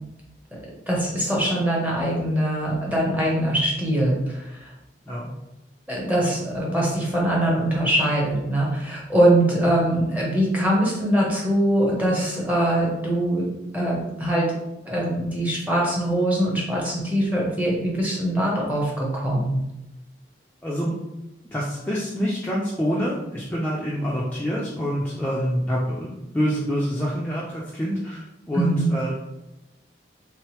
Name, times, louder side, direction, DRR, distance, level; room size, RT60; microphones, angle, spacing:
voice 1, 0.9-4.7 5.9-13.5 13.7-14.5 14.8-19.6 28.5-28.9, right 1 dB, 10° right, -4 dB, 0.9 m, -22 dB
voice 2, 20.6-21.0 21.5-29.1, equal, 10° left, -6 dB, 0.4 m, -26 dB
3.5 x 3.3 x 3.0 m, 0.94 s
head